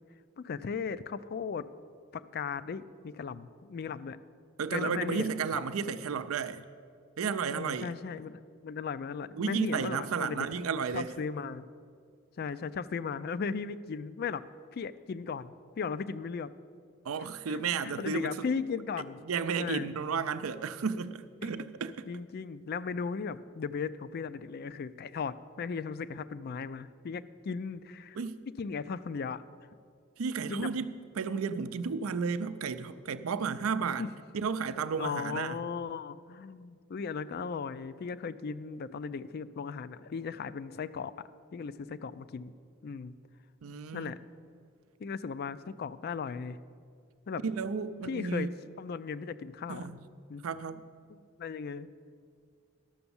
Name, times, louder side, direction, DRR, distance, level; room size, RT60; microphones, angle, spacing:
voice 1, 0.4-1.6 2.1-4.2 4.7-5.6 7.5-10.5 10.9-11.7 12.4-14.4 14.7-16.5 17.5-19.2 19.6-19.9 21.4-21.7 22.1-28.2 28.6-29.4 30.5-30.7 34.0-34.1 35.0-41.1 41.5-42.5 42.8-43.2 43.9-44.2 45.0-46.6 47.3-47.4 48.0-48.5 48.8-49.9 50.3-50.4 51.1-51.9, left 5 dB, 50° left, 15 dB, 0.4 m, -37 dB
voice 2, 4.6-6.6 7.2-7.9 9.4-11.1 17.0-18.3 19.3-22.1 28.1-28.4 30.2-34.1 34.3-35.5 43.6-44.1 47.4-48.5 49.7-50.0 50.4-50.8, right 5 dB, 85° right, 12 dB, 0.5 m, -33 dB
11.5 x 7.0 x 7.0 m, 2.2 s
head